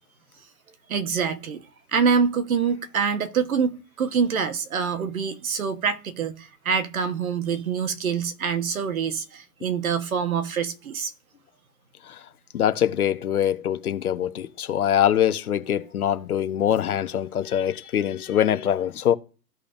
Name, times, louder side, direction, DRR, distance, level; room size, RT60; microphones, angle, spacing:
voice 1, 0.9-1.6 1.9-11.1, right 6 dB, 60° right, 1.3 m, -25 dB
voice 2, 12.5-19.2, left 10 dB, 65° left, 0.9 m, -23 dB
15.0 x 5.2 x 2.6 m
hypercardioid pair, 170°, 48 cm